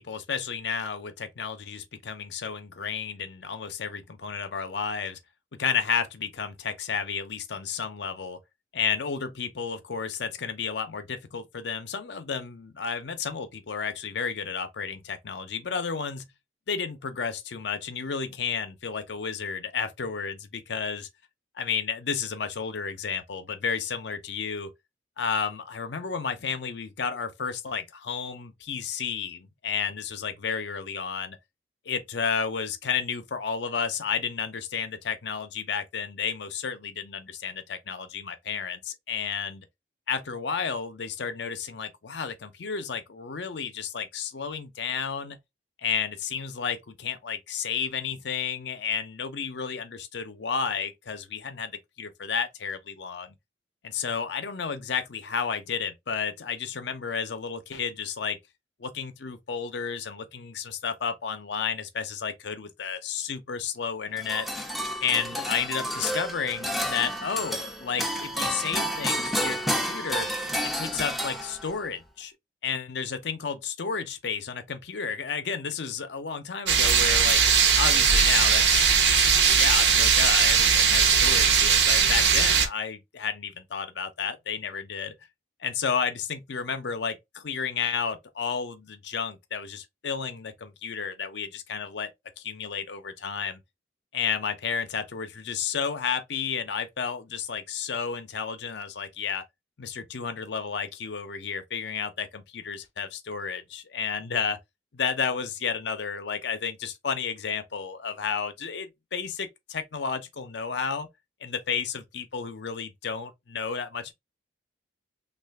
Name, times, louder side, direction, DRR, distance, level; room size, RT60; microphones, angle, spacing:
voice 1, 0.0-5.2 5.5-8.4 8.7-16.3 16.7-21.1 21.6-24.7 25.2-31.4 31.9-39.6 40.1-45.4 45.8-53.4 53.8-58.4 58.8-64.5 65.0-70.3 70.6-72.3 72.6-77.4 77.8-85.1 85.6-92.1 92.4-93.6 94.1-99.4 99.8-104.6 104.9-111.1 111.4-114.1, left 6 dB, 65° left, 0.6 m, -32 dB
sound 1, 64.2-71.8, equal, ahead, 0.4 m, -30 dB
sound 2, 76.7-82.7, right 6 dB, 65° right, 0.7 m, -20 dB
3.2 x 2.4 x 3.4 m
head